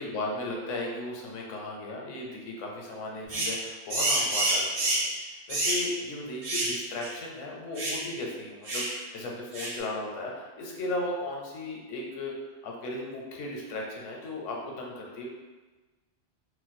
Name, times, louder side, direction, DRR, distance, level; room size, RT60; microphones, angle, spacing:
voice 1, 0.0-12.3 12.6-15.3, left 2 dB, 85° left, -1 dB, 1.0 m, -36 dB
sound 1, 3.3-3.6 3.9-5.1 5.5-5.9 6.4-6.8 7.0-7.1 7.8-8.0 8.7-8.9 9.5-9.8, right 1 dB, 65° right, 1.0 m, -28 dB
2.5 x 2.2 x 4.0 m, 1.3 s
omnidirectional pair, 1.3 m